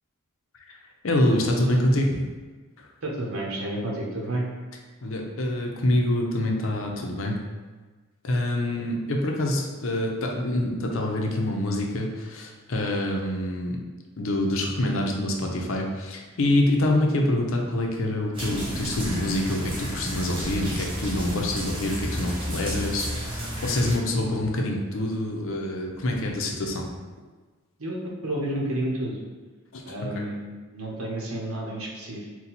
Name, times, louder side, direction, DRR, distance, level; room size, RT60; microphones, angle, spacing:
voice 1, 1.0-2.2 2.8-2.9 5.0-7.4 8.2-13.8 14.2-26.9 29.7-29.8 30.2-30.3, left 1 dB, 65° left, 1 dB, 0.6 m, -26 dB
voice 2, 3.0-4.5 8.7-8.8 27.8-29.2 29.9-32.2, right 1 dB, 85° right, -2 dB, 0.9 m, -31 dB
sound 1, 18.3-24.0, equal, 25° right, 1.0 m, -32 dB
sound 2, 18.4-18.9 19.5-19.6 20.1-21.5 22.2-22.3 23.0-24.1, right 1 dB, 50° right, 0.4 m, -42 dB
4.0 x 2.3 x 4.2 m, 1.4 s
head